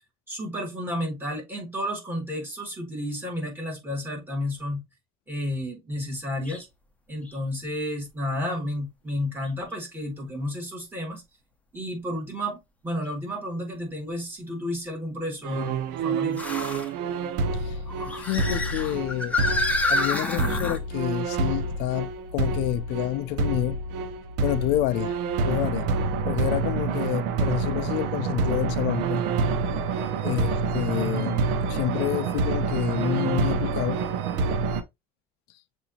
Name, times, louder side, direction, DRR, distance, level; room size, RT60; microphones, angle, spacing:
voice 1, 0.3-4.8 5.3-6.7 7.1-11.2 11.7-15.7 16.0-16.4, left 1 dB, 10° right, 2.1 m, -31 dB
sound 1, 6.4-6.6 7.3-7.4 9.4-9.5 13.1-13.2 16.3-16.9 17.8-20.8, left 2 dB, 10° left, 0.8 m, -28 dB
sound 2, 15.4-34.8, right 4 dB, 80° right, 0.7 m, -27 dB
voice 2, 18.2-19.4 19.9-23.8 24.4-25.2 25.5-25.9 26.3-29.2 30.2-31.4 31.7-34.0, left 15 dB, 75° left, 0.4 m, -28 dB
6.8 x 2.7 x 2.7 m
cardioid pair, 135°, 18 cm